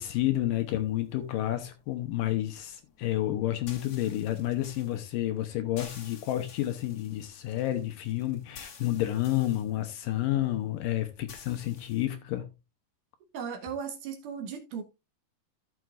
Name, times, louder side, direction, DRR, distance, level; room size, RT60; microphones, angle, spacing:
voice 1, 0.0-12.5, left 14 dB, 75° left, 2.3 m, -30 dB
sound 1, 0.6-12.1, left 6 dB, 50° left, 1.9 m, -52 dB
voice 2, 13.3-14.8, right 7 dB, 65° right, 2.4 m, -36 dB
14.0 x 7.2 x 2.4 m
omnidirectional pair, 4.4 m